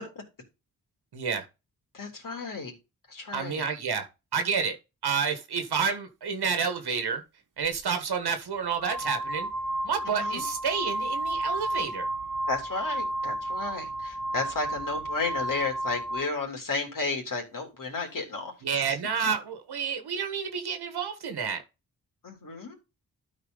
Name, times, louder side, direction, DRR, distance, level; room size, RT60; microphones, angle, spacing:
voice 1, 1.1-1.4 3.3-4.1 4.3-4.8 5.0-7.2 7.6-9.5 9.8-12.1 18.6-21.6, right 6 dB, 80° right, 1.5 m, -29 dB
voice 2, 1.9-2.7 3.1-3.7 10.1-10.4 12.5-18.5 18.9-19.0 22.2-22.7, left 3 dB, 55° left, 3.3 m, -33 dB
sound 1, 7.6-7.8 8.6-16.3, right 1 dB, 50° right, 1.3 m, -32 dB
12.5 x 4.4 x 4.0 m
wide cardioid pair, 95°, 38 cm